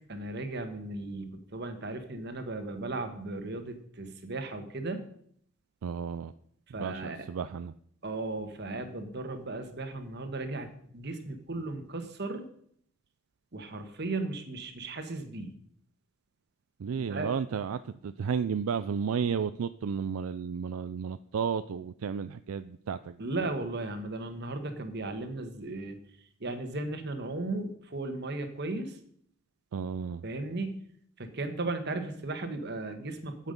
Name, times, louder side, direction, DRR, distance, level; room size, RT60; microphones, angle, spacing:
voice 1, 0.1-5.0 6.7-7.2 8.0-12.4 13.5-15.5 17.1-17.3 23.2-26.0 26.4-29.0 30.2-30.8 31.2-33.5, right 2 dB, 50° right, 7 dB, 1.4 m, -36 dB
voice 2, 5.8-6.3 6.7-7.7 16.8-23.2 29.7-30.2, right 6 dB, 75° right, 12 dB, 0.4 m, -33 dB
9.4 x 8.3 x 5.3 m, 0.65 s
head